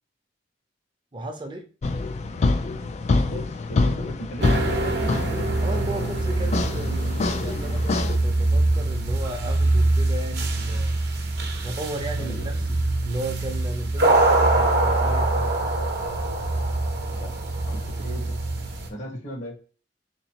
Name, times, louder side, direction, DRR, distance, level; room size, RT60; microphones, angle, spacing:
voice 1, 1.1-1.7 5.6-11.0 11.6-15.6, right 1 dB, 25° right, 0.6 m, -35 dB
sound 1, 1.8-8.2, left 3 dB, 35° left, 0.3 m, -26 dB
voice 2, 3.1-5.1 12.2-12.7 17.1-17.3 17.6-18.4 18.9-19.6, equal, 65° left, 1.1 m, -37 dB
sound 2, 4.4-18.9, right 2 dB, 60° right, 0.8 m, -24 dB
3.9 x 3.0 x 2.8 m
head